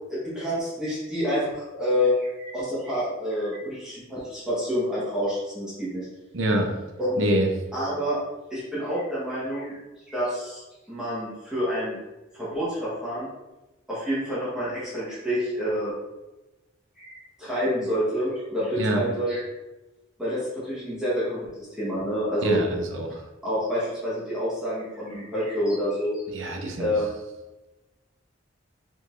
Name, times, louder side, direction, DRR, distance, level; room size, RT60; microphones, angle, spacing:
voice 1, 0.1-6.1 7.0-7.2 7.7-8.2 8.5-9.8 10.1-10.6 10.9-12.0 12.3-13.3 13.9-15.9 17.0-19.4 20.2-21.5 21.8-22.6 23.4-26.3 26.8-27.1, equal, 5° right, -11 dB, 1.2 m, -28 dB
voice 2, 6.3-6.7 7.2-7.5 18.8-19.0 22.4-23.2 26.3-26.9, right 1 dB, 90° right, 2 dB, 0.8 m, -25 dB
5.1 x 3.9 x 2.6 m, 1.1 s
head